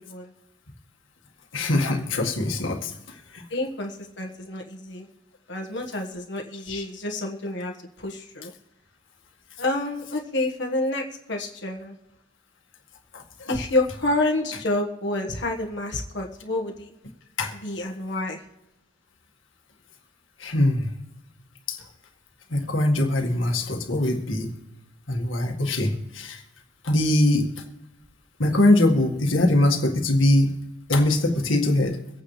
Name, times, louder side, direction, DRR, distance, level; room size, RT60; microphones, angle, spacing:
voice 1, 1.5-3.4 6.7-6.9 13.1-13.6 17.4-17.5 20.4-20.9 21.7-21.8 22.5-24.5 25.1-26.4 26.8-27.6 28.4-30.5 30.9-32.0, left 1 dB, 75° left, 2 dB, 1.9 m, -22 dB
voice 2, 3.5-5.1 5.5-7.7 8.0-8.5 9.6-11.9 13.5-16.9 17.6-18.4, left 2 dB, 60° left, 1 dB, 1.5 m, -28 dB
24.0 x 9.0 x 3.3 m, 0.96 s
head